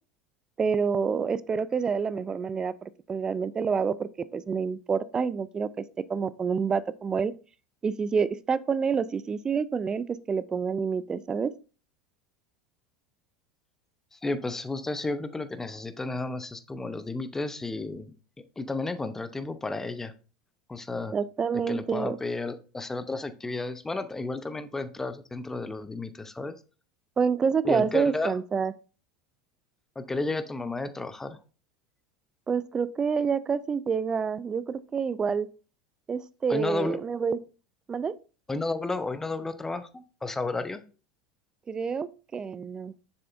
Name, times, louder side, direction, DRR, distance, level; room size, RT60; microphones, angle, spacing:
voice 1, 0.6-5.7 6.1-7.3 7.8-11.5 21.1-22.2 27.2-28.7 32.5-35.5 36.1-37.4 37.9-38.1 41.7-42.9, right 6 dB, 20° right, 0.4 m, -28 dB
voice 2, 14.1-18.1 18.6-20.1 20.7-21.1 21.7-26.6 27.6-28.3 30.0-31.4 36.5-37.0 38.5-40.8, left 3 dB, 10° left, 0.8 m, -32 dB
7.0 x 6.7 x 2.6 m
figure-of-eight pair, 75°, 3 cm